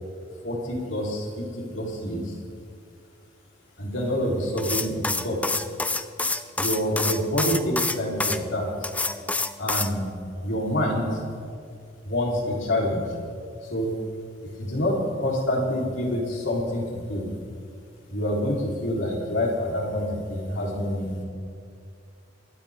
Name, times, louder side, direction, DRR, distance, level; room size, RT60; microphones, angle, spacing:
voice 1, 0.4-2.3 3.8-5.4 6.6-8.7 9.6-10.1 10.4-11.2 12.0-13.1 13.7-14.0 14.6-17.4 18.1-21.2, left 1 dB, 65° left, -4 dB, 3.8 m, -27 dB
sound 1, 4.6-8.4 8.8-9.9, left 3 dB, 5° left, 0.3 m, -27 dB
26.0 x 12.0 x 3.7 m, 2.2 s
head